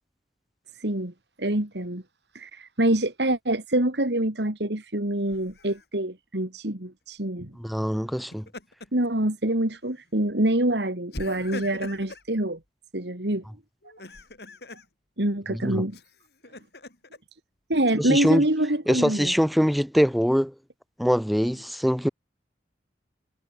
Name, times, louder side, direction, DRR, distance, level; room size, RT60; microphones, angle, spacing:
voice 1, 0.8-1.1 1.4-2.0 2.3-7.5 8.9-12.6 12.9-13.4 15.2-16.0 17.7-19.3, right 1 dB, 75° right, 3.1 m, -26 dB
Laughter, 5.3-5.8 8.1-9.1 9.5-9.7 11.1-12.3 13.8-14.9 15.9-17.2, left 2 dB, 65° left, 4.5 m, -41 dB
voice 2, 7.5-8.5 15.5-15.8 18.0-18.5 18.9-20.5 21.0-22.1, equal, ahead, 2.5 m, -23 dB
head